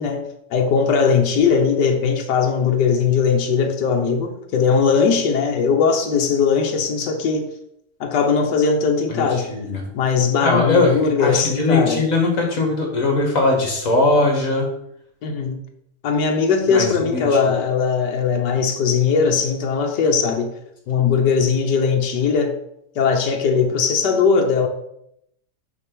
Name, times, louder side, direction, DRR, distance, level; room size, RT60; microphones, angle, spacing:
voice 1, 0.0-7.5 8.0-9.5 9.9-12.0 15.2-15.6 16.0-20.5 20.9-22.5 23.0-24.7, left 5 dB, 80° left, 1.5 m, -19 dB
voice 2, 9.1-9.8 10.4-14.7 16.7-17.5, left 2 dB, 50° left, 2.3 m, -20 dB
6.2 x 5.0 x 6.2 m
omnidirectional pair, 1.8 m